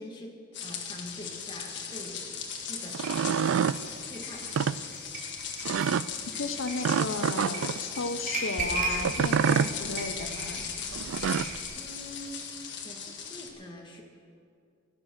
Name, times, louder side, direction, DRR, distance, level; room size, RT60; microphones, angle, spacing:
voice 1, 0.0-2.3 2.6-3.1 4.1-4.4 11.8-12.4 12.8-14.0, left 1 dB, 25° left, 0 dB, 2.0 m, -44 dB
sound 1, 0.5-13.5, left 7 dB, 60° left, 1.7 m, -38 dB
sound 2, 2.9-3.8 4.4-4.8 5.7-6.1 6.8-7.8 9.0-9.7 10.9-11.6, right 7 dB, 85° right, 0.3 m, -27 dB
sound 3, 3.0-11.6, right 3 dB, 45° right, 3.2 m, -37 dB
voice 2, 6.4-10.7, left 3 dB, 90° left, 8 dB, 0.8 m, -34 dB
16.0 x 11.0 x 6.4 m, 2.4 s
head